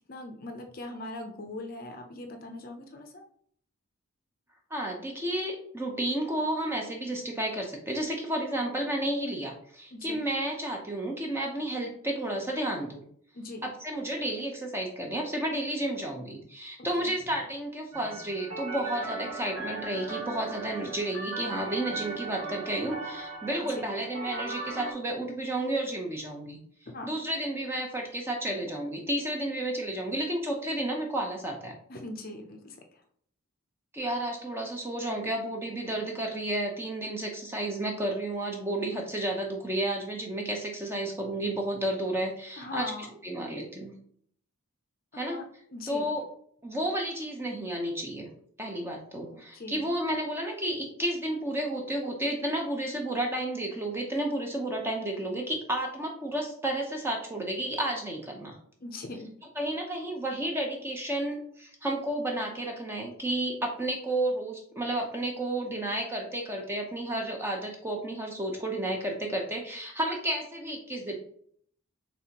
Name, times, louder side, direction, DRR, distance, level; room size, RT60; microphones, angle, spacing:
voice 1, 0.1-3.2 9.9-10.2 13.3-13.6 17.0-17.1 23.6-23.8 26.9-27.1 31.9-33.0 42.6-43.1 45.1-45.4 45.7-46.1 49.5-49.8 58.8-59.3, left 2 dB, 40° left, 4 dB, 0.5 m, -40 dB
voice 2, 4.7-13.0 13.6-26.6 27.0-31.7 33.9-42.9 43.2-43.9 45.1-45.4 45.9-46.2 46.6-48.3 48.6-58.6 59.6-71.1, right 1 dB, 10° right, 1 dB, 0.6 m, -32 dB
sound 1, 17.9-24.9, right 3 dB, 80° right, 1.6 m, -38 dB
4.2 x 3.3 x 2.9 m, 0.62 s
head